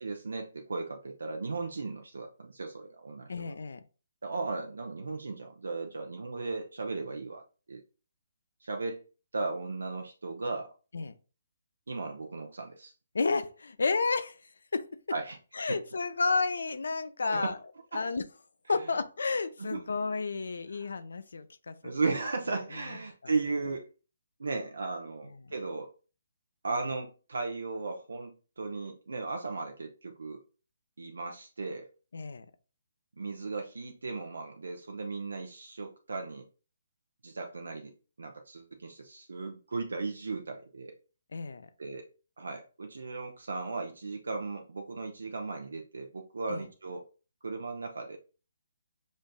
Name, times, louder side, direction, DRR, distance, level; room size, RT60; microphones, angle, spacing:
voice 1, 0.0-3.5 4.2-7.4 7.7-7.8 8.6-9.0 9.3-10.7 11.9-12.9 15.1-15.4 15.7-15.8 17.2-17.5 17.9-18.0 19.6-19.8 20.7-20.9 21.8-23.9 24.4-25.9 26.6-30.4 31.0-31.9 33.2-36.5 37.2-40.9 41.8-42.1 42.4-47.0 47.4-48.2, right 3 dB, 75° right, 0.5 m, -36 dB
voice 2, 3.3-3.8 10.9-11.1 13.1-14.4 14.7-14.9 15.6-17.6 17.9-18.2 18.7-21.7 32.1-32.5 41.3-41.7 46.5-46.6, left 4 dB, 75° left, 0.4 m, -31 dB
6.2 x 2.6 x 2.2 m
figure-of-eight pair, 145°, 0 cm